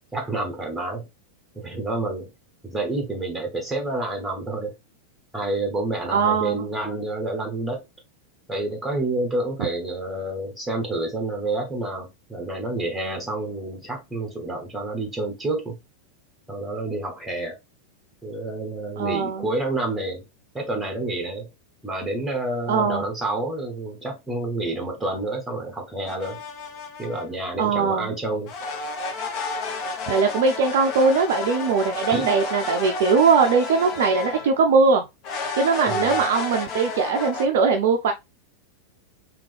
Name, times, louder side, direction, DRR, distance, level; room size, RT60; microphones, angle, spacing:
voice 1, 0.1-1.1 1.5-2.3 2.6-4.7 5.3-7.8 8.5-15.8 16.5-17.5 18.2-20.2 20.5-21.5 21.8-26.4 27.0-28.5 32.1-32.3 35.9-36.2, right 2 dB, 5° right, 1.1 m, -29 dB
voice 2, 6.1-6.7 19.0-19.5 22.7-23.0 27.6-28.1 30.1-35.0 35.6-38.1, right 5 dB, 55° right, 0.4 m, -20 dB
sound 1, 26.1-27.3 28.5-34.6 35.2-37.4, left 3 dB, 40° left, 1.0 m, -31 dB
3.6 x 3.1 x 3.3 m
figure-of-eight pair, 90°, 0 cm